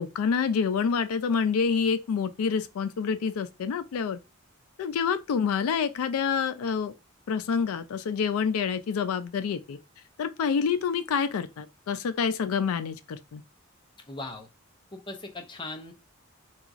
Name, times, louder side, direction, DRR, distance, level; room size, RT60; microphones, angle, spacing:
voice 1, 0.0-4.2 4.8-6.9 7.3-9.8 10.2-13.4, left 6 dB, 85° left, 0.3 m, -27 dB
voice 2, 14.1-14.5 14.9-15.9, left 2 dB, 20° left, 0.5 m, -39 dB
2.9 x 2.3 x 2.5 m
head